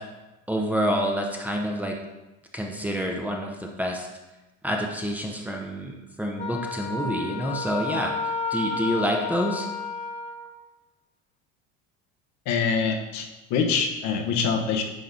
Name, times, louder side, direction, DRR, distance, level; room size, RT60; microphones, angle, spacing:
voice 1, 0.5-2.0 2.5-4.1 4.6-8.1 8.5-9.7, equal, 5° right, 0 dB, 0.9 m, -27 dB
Wind instrument woodwind instrument, 6.4-10.5, left 4 dB, 25° left, 0.9 m, -31 dB
voice 2, 12.5-14.8, left 5 dB, 65° left, 3 dB, 1.3 m, -25 dB
10.5 x 4.0 x 3.9 m, 1.1 s
supercardioid pair, 120°, 30 cm